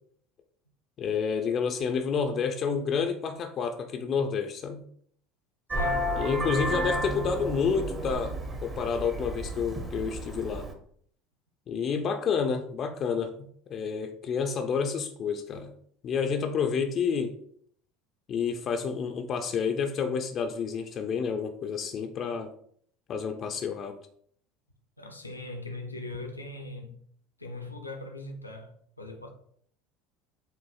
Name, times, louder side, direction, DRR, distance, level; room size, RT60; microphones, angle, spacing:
voice 1, 1.0-4.8 6.2-10.7 11.7-15.7 16.0-17.3 18.3-22.5 23.1-23.9, left 6 dB, 35° left, 0.4 m, -29 dB
voice 2, 5.7-6.1 25.0-27.0 27.4-29.3, left 2 dB, 85° left, 0.5 m, -40 dB
Vehicle horn car horn honking, 5.7-10.7, equal, 25° right, 0.7 m, -32 dB
6.6 x 2.5 x 2.3 m
figure-of-eight pair, 70°, 0 cm